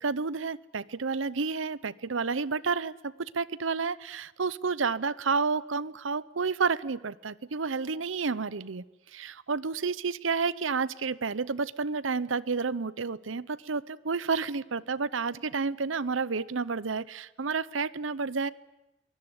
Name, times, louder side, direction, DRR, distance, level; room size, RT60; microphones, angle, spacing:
voice 1, 0.0-8.8 9.1-18.5, right 4 dB, 85° right, 19 dB, 0.8 m, -30 dB
23.5 x 20.5 x 9.7 m, 0.96 s
head